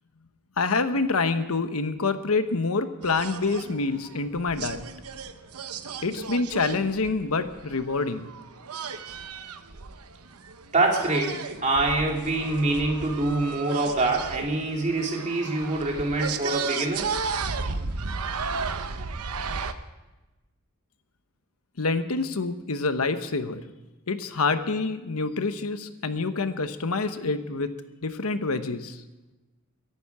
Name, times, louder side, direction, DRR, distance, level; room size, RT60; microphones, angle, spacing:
voice 1, 0.6-4.9 6.0-8.3 21.8-23.6 24.1-27.7 28.0-29.0, left 3 dB, 80° left, 10 dB, 1.1 m, -27 dB
sound 1, 3.0-19.7, right 5 dB, 90° right, 0.9 m, -35 dB
voice 2, 10.7-17.1, right 2 dB, 35° right, 0 dB, 2.9 m, -25 dB
23.0 x 11.5 x 4.9 m, 1.1 s
head